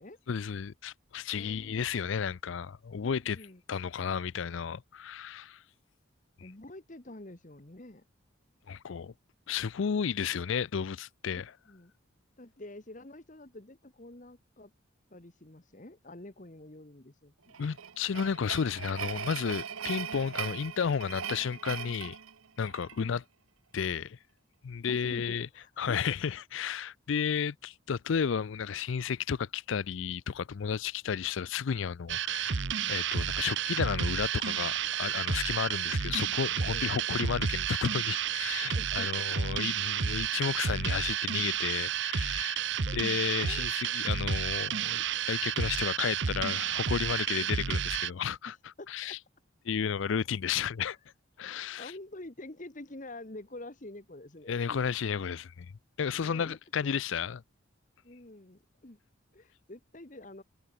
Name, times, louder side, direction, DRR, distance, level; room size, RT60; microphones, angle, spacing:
voice 1, 0.3-3.4 3.7-5.6 8.7-9.1 9.5-11.5 17.6-22.2 22.6-23.2 23.7-24.2 24.6-25.5 25.8-32.6 32.9-48.5 48.9-49.2 49.6-51.0 51.4-51.9 54.5-55.7 56.0-57.4, left 7 dB, 70° left, 0.4 m, -32 dB
voice 2, 1.3-1.8 3.0-3.6 6.4-8.0 11.3-11.9 12.4-14.7 15.1-17.6 23.0-23.2 24.9-26.0 36.7-36.9 38.7-39.1 42.8-43.0 43.4-43.7 47.3-47.5 48.4-49.2 51.5-54.8 56.1-56.6 58.0-59.0 59.3-60.4, left 1 dB, 40° left, 1.4 m, -47 dB
sound 1, 17.5-23.0, right 8 dB, 85° right, 1.0 m, -39 dB
sound 2, 32.1-48.1, right 8 dB, 60° right, 0.7 m, -31 dB
head